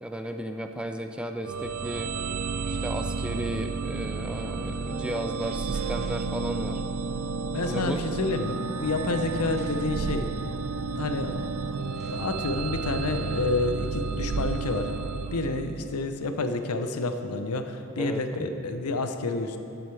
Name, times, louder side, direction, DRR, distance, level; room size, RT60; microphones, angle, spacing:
voice 1, 0.0-2.1 2.7-6.8 7.7-8.0 18.0-18.5, right 1 dB, 5° right, 5 dB, 0.4 m, -34 dB
sound 1, 1.4-16.2, right 4 dB, 70° right, 0.4 m, -31 dB
sound 2, 4.6-4.9 5.4-6.3 7.1-7.2 7.5-8.1 8.9-9.0 9.4-10.1 11.4-11.5 11.8-12.2, right 1 dB, 30° right, 1.9 m, -53 dB
voice 2, 7.5-10.3 10.9-11.4 12.1-14.9 15.3-19.6, left 3 dB, 80° left, 7 dB, 0.7 m, -29 dB
14.5 x 7.8 x 3.3 m, 2.9 s
head